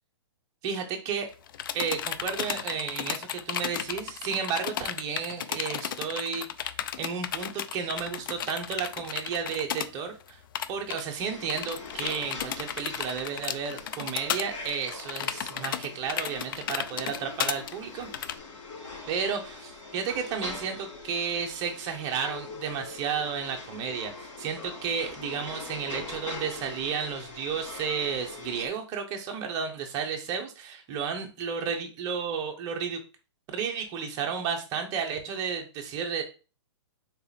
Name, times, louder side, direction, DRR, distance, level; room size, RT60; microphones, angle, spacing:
voice 1, 0.6-1.3 1.7-10.4 10.7-18.1 19.1-33.0 33.5-36.2, right 6 dB, 20° right, 3 dB, 0.8 m, -32 dB
sound 1, 1.3-9.9 10.2-10.3 10.5-11.0 11.5-18.4, left 9 dB, 45° left, 0.4 m, -34 dB
sound 2, 11.2-28.7, left 3 dB, 85° left, 2.5 m, -43 dB
4.0 x 2.9 x 4.0 m, 0.34 s
hypercardioid pair, 160°, 15 cm